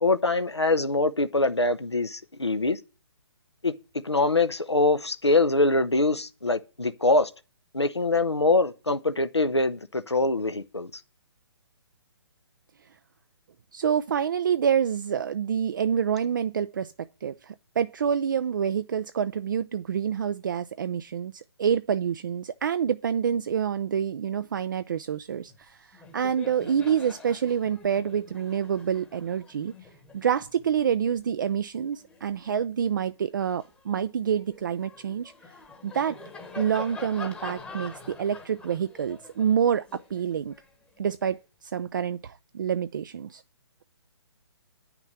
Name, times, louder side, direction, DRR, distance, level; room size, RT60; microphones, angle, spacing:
voice 1, 0.0-2.8 3.6-3.7 4.0-7.3 7.7-11.0, left 2 dB, 85° left, 0.9 m, -24 dB
voice 2, 13.7-29.7 30.1-35.3 35.8-36.2 36.6-40.5 41.0-43.4, right 8 dB, 50° right, 0.4 m, -27 dB
Laughter, 25.5-25.7 25.9-32.6 33.2-41.3, left 3 dB, 10° left, 1.1 m, -46 dB
9.1 x 5.9 x 8.2 m
figure-of-eight pair, 135°, 14 cm